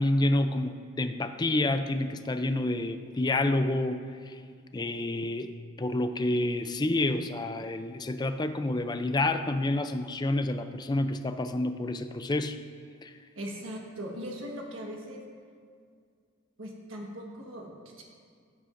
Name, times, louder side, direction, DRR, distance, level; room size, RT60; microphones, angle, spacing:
voice 1, 0.0-4.0 4.3-4.4 4.7-12.6 13.0-13.1, left 2 dB, 20° left, 9 dB, 0.4 m, -28 dB
voice 2, 13.3-15.2 16.6-18.0, equal, 80° right, -1 dB, 1.4 m, -39 dB
16.0 x 8.5 x 2.6 m, 2.1 s
head